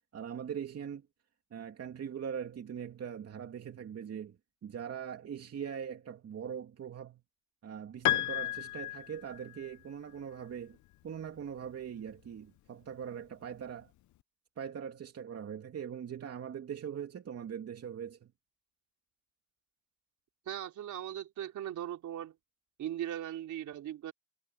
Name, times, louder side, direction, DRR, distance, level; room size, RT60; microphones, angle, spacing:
voice 1, 0.1-1.1 1.5-4.4 4.6-7.2 7.6-10.8 11.0-13.9 14.6-18.3, right 8 dB, 55° right, 2.8 m, -41 dB
Piano, 8.0-9.7, left 15 dB, 75° left, 0.8 m, -33 dB
voice 2, 20.5-22.3 22.8-24.1, right 11 dB, 75° right, 4.0 m, -39 dB
cardioid pair, 90°, 30 cm